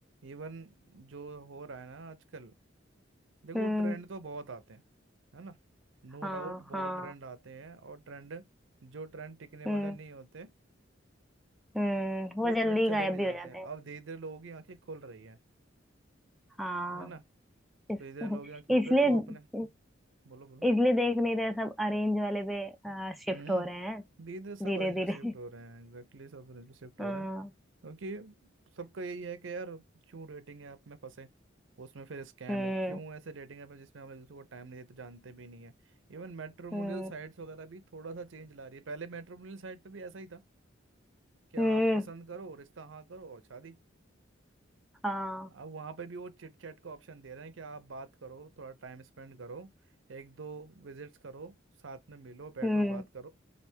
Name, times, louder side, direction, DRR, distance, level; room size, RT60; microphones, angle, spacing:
voice 1, 0.2-2.5 3.4-4.8 5.3-5.6 6.0-8.4 8.8-10.5 12.3-15.4 16.9-17.2 18.0-19.4 20.2-20.7 23.3-23.7 24.2-27.3 27.8-31.3 31.8-35.7 36.1-40.4 41.5-43.8 45.5-49.7 50.1-51.5 51.8-53.3, right 4 dB, 80° right, 0.6 m, -44 dB
voice 2, 3.5-4.0 6.2-7.1 9.7-10.0 11.7-13.7 16.6-17.1 17.9-18.4 18.7-19.2 19.5-19.7 20.6-24.0 24.6-25.3 27.0-27.5 32.5-33.0 36.7-37.1 41.6-42.0 45.0-45.5 52.6-53.0, equal, ahead, 0.4 m, -30 dB
3.3 x 2.5 x 4.5 m
head